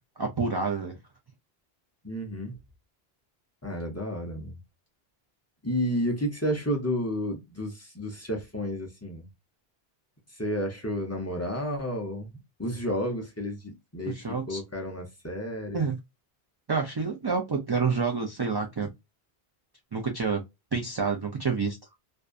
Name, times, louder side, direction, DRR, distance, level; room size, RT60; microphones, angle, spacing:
voice 1, 0.2-1.0 14.1-14.6 15.7-16.0 16.7-18.9 19.9-20.4 20.7-21.8, right 5 dB, 40° right, 0.3 m, -28 dB
voice 2, 2.0-2.5 3.6-4.6 5.6-9.3 10.3-14.2 14.5-15.9, equal, 20° left, 0.5 m, -31 dB
2.6 x 2.2 x 2.3 m
omnidirectional pair, 1.1 m